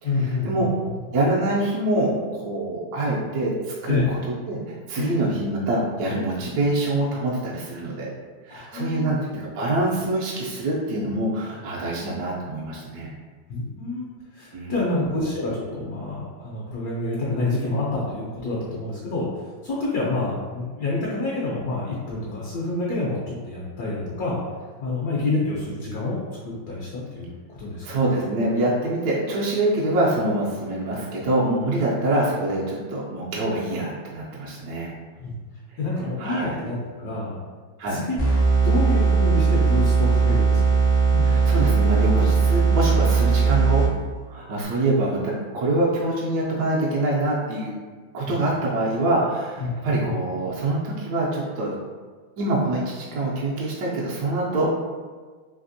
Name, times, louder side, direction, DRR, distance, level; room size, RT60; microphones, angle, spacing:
voice 1, 0.0-0.7 3.9-4.1 4.9-5.3 8.5-9.2 9.7-10.1 13.5-14.1 14.3-19.3 19.6-24.4 24.8-26.2 26.4-28.0 35.2-35.3 35.8-37.3 37.9-38.2 38.6-40.8 41.1-41.4 42.1-42.2 48.3-48.4 49.6-50.2, left 2 dB, 65° left, -5 dB, 1.0 m, -28 dB
voice 2, 1.1-4.2 4.5-8.1 8.4-13.1 14.5-14.9 27.8-34.9 36.2-36.6 37.8-38.0 41.2-43.8 44.3-47.7 48.1-51.7 52.4-54.8, right 2 dB, 70° right, -6 dB, 1.0 m, -25 dB
sound 1, 38.2-44.2, right 5 dB, 50° left, 0.7 m, -19 dB
3.4 x 2.8 x 2.6 m, 1.5 s
omnidirectional pair, 2.1 m